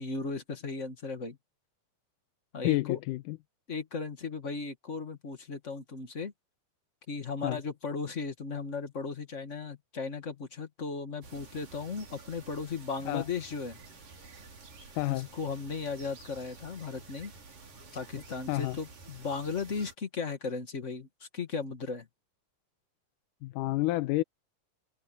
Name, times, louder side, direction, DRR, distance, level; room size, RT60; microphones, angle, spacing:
voice 1, 0.0-1.4 2.5-3.0 3.7-6.3 7.1-13.8 15.1-17.3 17.9-22.1, left 4 dB, 35° left, 1.2 m, -36 dB
voice 2, 2.6-3.4 7.4-7.6 13.1-13.2 15.0-15.3 18.5-18.8 23.4-24.2, left 18 dB, 85° left, 2.2 m, -29 dB
sound 1, 11.2-19.9, right 4 dB, 90° right, 7.1 m, -51 dB
omnidirectional pair, 3.8 m